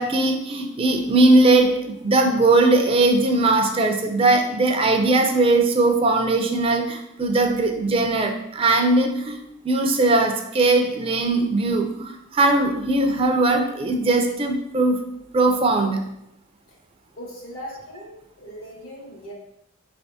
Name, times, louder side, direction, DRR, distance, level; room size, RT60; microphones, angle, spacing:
voice 1, 0.0-9.4 9.6-15.0 15.3-16.0, right 2 dB, 25° right, 4 dB, 0.4 m, -19 dB
voice 2, 17.1-19.3, equal, 90° left, -3 dB, 1.6 m, -39 dB
4.8 x 3.3 x 2.7 m, 0.83 s
head